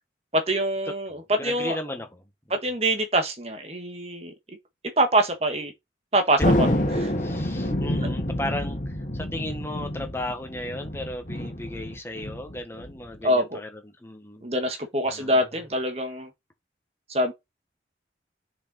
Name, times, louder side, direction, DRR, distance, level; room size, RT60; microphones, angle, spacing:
voice 1, 0.3-1.8 2.5-4.3 5.0-5.7 6.1-6.4 6.9-7.1 13.2-13.6 14.4-16.3 17.1-17.3, right 1 dB, 35° right, 1.6 m, -24 dB
voice 2, 1.4-2.2 7.2-14.5 15.1-15.4, left 1 dB, 15° left, 1.5 m, -35 dB
Thunder, 6.4-13.2, left 1 dB, 45° left, 1.9 m, -27 dB
6.8 x 5.1 x 4.2 m
head